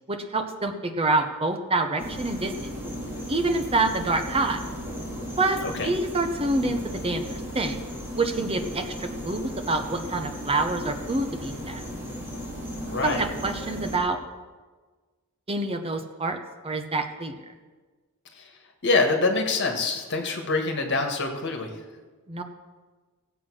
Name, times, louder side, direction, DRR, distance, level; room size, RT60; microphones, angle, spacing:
voice 1, 0.1-2.7 3.3-4.6 5.4-7.8 8.2-11.8 13.0-14.2 15.5-16.4 16.6-17.3 22.3-22.4, right 2 dB, 25° right, 6 dB, 0.8 m, -27 dB
sound 1, 2.0-14.0, equal, 10° right, 3.0 m, -36 dB
voice 2, 5.6-6.0 12.9-13.2 18.8-21.7, left 3 dB, 55° left, 3 dB, 1.8 m, -25 dB
16.5 x 8.0 x 6.3 m, 1.4 s
head